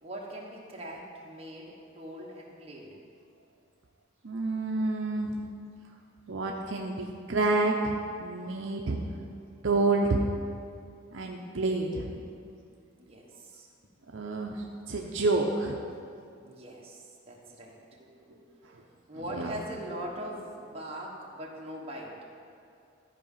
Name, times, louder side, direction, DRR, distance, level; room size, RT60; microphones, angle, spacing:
voice 1, 0.0-2.9 9.3-9.4 13.0-13.7 16.4-18.4 19.1-22.1, right 1 dB, 30° right, -3 dB, 1.4 m, -41 dB
voice 2, 4.2-5.4 6.3-9.0 9.6-10.3 11.1-12.2 14.1-15.8 18.6-18.8 19.3-19.5, right 2 dB, 65° right, 1 dB, 0.7 m, -29 dB
13.5 x 5.0 x 5.6 m, 2.4 s
head